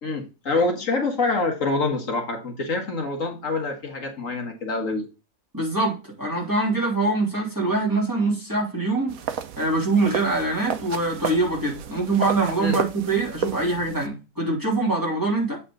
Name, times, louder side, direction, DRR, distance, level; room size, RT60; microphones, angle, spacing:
voice 1, 0.0-5.1 12.6-12.8, left 3 dB, 70° left, 1.8 m, -26 dB
voice 2, 5.5-9.2 9.6-15.6, right 2 dB, 15° right, 3.1 m, -24 dB
sound 1, 9.1-14.1, right 8 dB, 85° right, 1.2 m, -32 dB
8.3 x 4.3 x 3.8 m
omnidirectional pair, 1.4 m